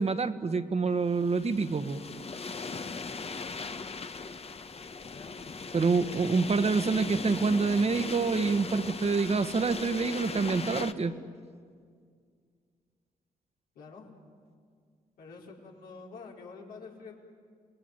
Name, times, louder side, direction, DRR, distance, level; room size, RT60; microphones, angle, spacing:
voice 1, 0.0-2.0 5.7-11.1, right 4 dB, 45° right, 9 dB, 1.6 m, -27 dB
sound 1, 1.0-10.9, left 4 dB, 40° left, 1.4 m, -39 dB
voice 2, 5.1-5.4 6.0-6.4 13.7-14.1 15.2-17.2, left 4 dB, 85° left, -1 dB, 4.6 m, -47 dB
28.5 x 20.0 x 9.4 m, 2.1 s
supercardioid pair, 50°, 15 cm